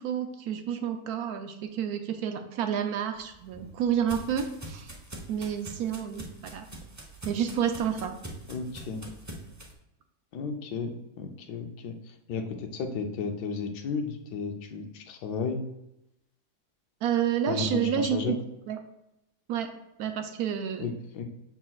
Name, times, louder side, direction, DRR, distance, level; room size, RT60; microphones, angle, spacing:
voice 1, 0.0-4.9 5.3-6.7 7.2-8.2 17.0-18.4 18.7-18.8 19.5-19.7 20.0-20.9, right 8 dB, 70° right, 7 dB, 1.1 m, -29 dB
sound 1, 3.2-9.7, right 1 dB, 25° right, 0.3 m, -44 dB
voice 2, 8.5-9.1 10.3-10.9 11.2-15.6 17.5-18.3 20.8-21.3, left 5 dB, 85° left, 4 dB, 1.3 m, -33 dB
7.4 x 5.7 x 2.3 m, 0.87 s
omnidirectional pair, 1.7 m